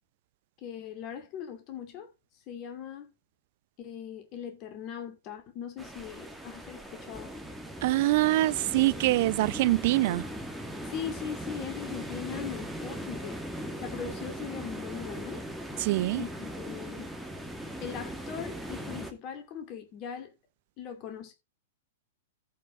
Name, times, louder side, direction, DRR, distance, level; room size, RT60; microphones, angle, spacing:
voice 1, 0.6-2.1 2.5-3.1 3.8-7.4 10.9-13.4 13.8-15.4 16.2-17.1 17.8-20.3 20.8-21.3, left 8 dB, 35° left, 2.4 m, -40 dB
sound 1, 5.8-19.1, equal, ahead, 2.0 m, -39 dB
voice 2, 7.8-10.2 15.8-16.2, right 18 dB, 45° right, 0.5 m, -24 dB
14.0 x 5.4 x 3.8 m
figure-of-eight pair, 100°, 0 cm